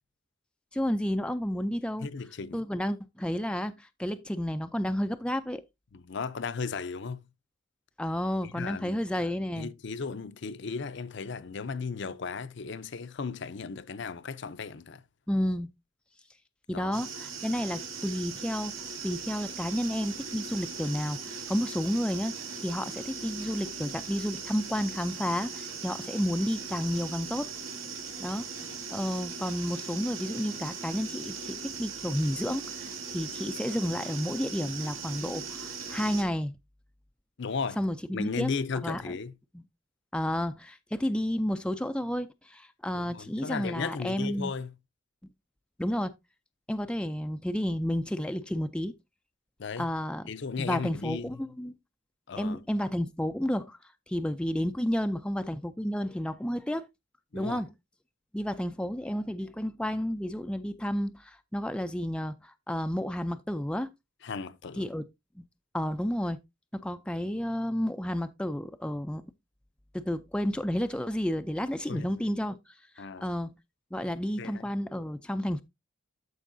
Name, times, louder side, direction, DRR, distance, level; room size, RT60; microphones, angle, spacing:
voice 1, 0.7-2.1 2.5-5.6 8.0-9.7 15.3-15.7 16.7-18.8 19.0-27.5 28.2-28.5 28.9-36.6 37.8-38.5 38.8-39.2 40.1-44.5 45.8-46.1 46.7-48.9 49.8-50.3 50.6-51.8 52.4-53.8 54.1-56.9 57.3-57.7 58.3-63.9 64.8-65.0 65.4-65.5 65.7-66.4 66.7-69.2 69.9-72.6 73.0-73.5 73.9-75.6, equal, 5° left, 0.4 m, -31 dB
voice 2, 2.0-2.6 5.9-7.2 8.4-9.0 9.5-15.0 16.7-17.0 28.6-28.8 37.4-37.8 38.1-39.3 42.9-44.7 49.6-49.9 50.3-51.4 52.3-52.6 57.3-57.6 64.2-64.9 71.9-72.3 73.0-73.3 74.4-74.7, left 5 dB, 60° left, 0.6 m, -36 dB
sound 1, 16.9-36.2, right 5 dB, 85° right, 2.4 m, -39 dB
13.5 x 4.6 x 2.6 m
head